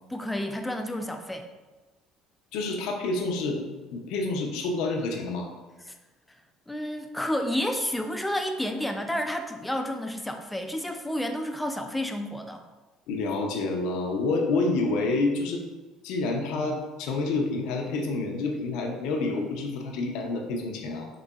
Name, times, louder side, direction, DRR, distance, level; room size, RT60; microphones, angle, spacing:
voice 1, 0.1-1.5 5.9-6.0 6.7-12.6, left 1 dB, 5° left, 5 dB, 0.3 m, -30 dB
voice 2, 2.5-3.6 3.9-5.5 13.1-15.6 16.0-21.1, left 3 dB, 75° left, 2 dB, 0.6 m, -28 dB
3.9 x 2.9 x 2.3 m, 1.2 s
cardioid pair, 115°, 0 cm